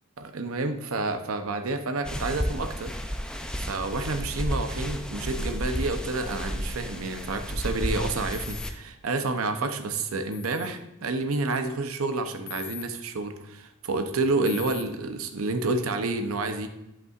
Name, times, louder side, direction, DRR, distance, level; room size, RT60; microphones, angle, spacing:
voice 1, 0.2-2.9 3.7-16.7, right 3 dB, 70° right, 8 dB, 0.7 m, -29 dB
sound 1, 2.0-8.7, equal, 5° left, 0.4 m, -32 dB
sound 2, 8.3-8.7 10.3-10.7 12.5-12.8 14.4-14.8, left 10 dB, 50° left, 0.8 m, -40 dB
10.5 x 5.5 x 2.4 m, 0.90 s
head